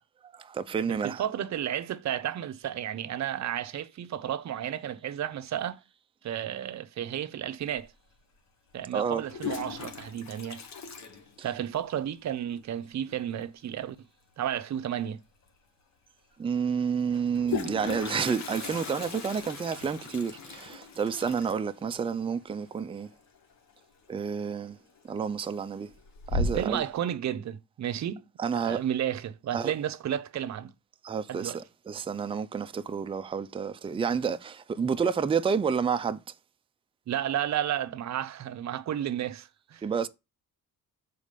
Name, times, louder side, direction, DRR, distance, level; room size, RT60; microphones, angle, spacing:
voice 1, 0.3-1.2 8.9-9.2 16.4-23.1 24.1-24.8 25.0-25.9 26.3-26.8 28.4-28.8 29.5-29.7 31.0-36.2 39.8-40.1, right 6 dB, 15° right, 0.4 m, -30 dB
voice 2, 0.9-5.8 6.2-7.9 8.7-10.6 11.4-14.0 14.4-15.2 26.5-28.2 28.5-30.7 31.3-31.6 37.1-39.8, right 10 dB, 55° right, 0.7 m, -32 dB
Toilet flush, 7.8-7.9 9.1-11.9 12.1-12.2 12.5-12.6 12.9-13.3 15.0-15.1 15.5-15.6 17.1-23.8 24.1-24.5 25.0-25.5 25.9-26.9, left 3 dB, 55° left, 1.4 m, -37 dB
7.1 x 4.1 x 5.0 m
cardioid pair, 140°, 34 cm